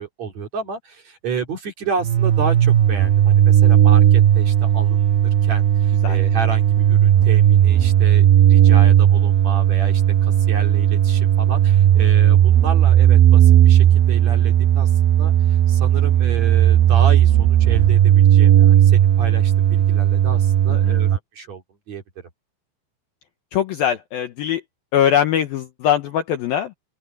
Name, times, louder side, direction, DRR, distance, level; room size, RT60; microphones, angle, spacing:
voice 1, 0.0-5.0 5.4-14.9 15.2-22.0, right 5 dB, 45° right, 3.2 m, -31 dB
sound 1, 2.0-21.2, right 11 dB, 80° right, 2.2 m, -15 dB
voice 2, 20.7-21.0 23.5-24.6 24.9-26.7, left 10 dB, 75° left, 2.3 m, -21 dB
open air
omnidirectional pair, 5.3 m